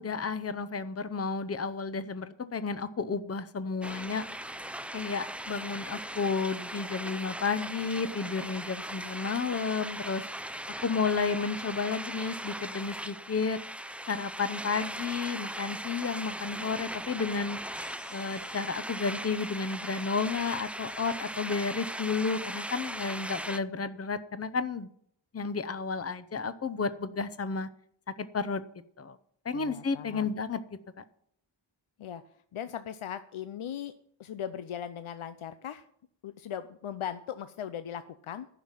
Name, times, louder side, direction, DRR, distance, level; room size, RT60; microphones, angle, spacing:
voice 1, 0.0-4.2 4.9-10.3 10.8-13.6 14.1-17.6 18.1-24.9 25.3-27.7 28.2-28.6 29.0-29.2 29.4-30.6 31.0-31.1, left 5 dB, 30° left, 13 dB, 0.7 m, -32 dB
sound 1, 3.8-23.6, right 1 dB, 5° right, 0.4 m, -39 dB
sound 2, 17.8-21.4, left 3 dB, 55° left, 2.1 m, -56 dB
voice 2, 29.5-30.3 32.0-32.2 32.5-33.9 34.2-35.8 36.2-38.5, left 9 dB, 90° left, 11 dB, 0.6 m, -38 dB
11.0 x 5.8 x 8.9 m, 0.66 s
wide cardioid pair, 85°, 48 cm